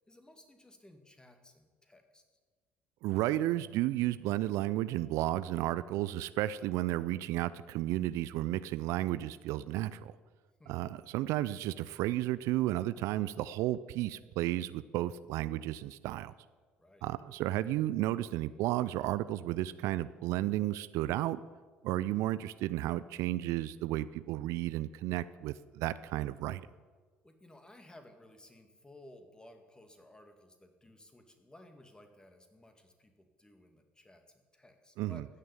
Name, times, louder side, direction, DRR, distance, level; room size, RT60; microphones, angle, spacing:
voice 1, 0.1-2.4 10.6-10.8 16.8-17.0 27.2-35.3, left 1 dB, 15° left, 6 dB, 2.3 m, -57 dB
voice 2, 3.0-10.2 10.7-16.3 17.0-21.4 21.8-26.7 35.0-35.2, right 15 dB, 65° right, 16 dB, 0.4 m, -33 dB
15.0 x 6.6 x 8.7 m, 1.4 s
hypercardioid pair, 55°, 5 cm